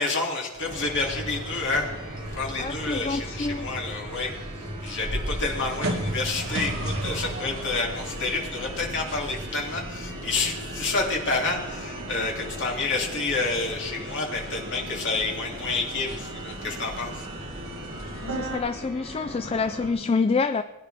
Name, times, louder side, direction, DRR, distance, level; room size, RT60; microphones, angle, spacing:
voice 1, 0.0-1.9 2.3-4.3 4.8-17.3, left 3 dB, 55° left, 2.6 m, -29 dB
sound 1, 0.5-19.9, right 1 dB, 30° right, 4.3 m, -42 dB
sound 2, 0.7-18.6, right 1 dB, 60° right, 1.7 m, -35 dB
voice 2, 2.6-3.7 18.2-20.6, left 4 dB, 25° left, 0.3 m, -27 dB
20.5 x 10.0 x 3.4 m
head